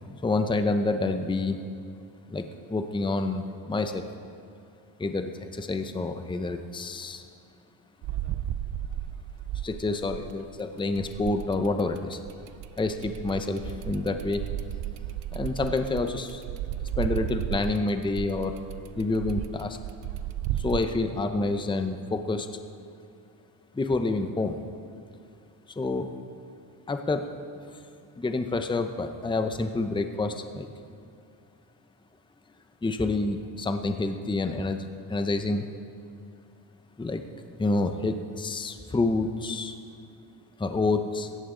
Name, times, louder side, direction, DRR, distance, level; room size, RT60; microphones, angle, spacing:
voice 1, 0.2-1.6 2.3-4.0 5.0-7.2 9.6-12.2 12.8-14.4 15.3-16.4 17.0-18.6 19.0-19.8 20.6-22.5 23.7-24.6 25.8-26.1 26.9-27.3 27.7-27.8 28.2-30.7 32.8-35.7 37.0-37.2 37.6-39.7 40.6-41.3, left 3 dB, 10° left, 7 dB, 0.7 m, -28 dB
sound 1, 8.0-10.5 11.0-20.8, right 12 dB, 85° right, 0.7 m, -34 dB
17.0 x 14.0 x 3.8 m, 2.4 s
cardioid pair, 105°, 44 cm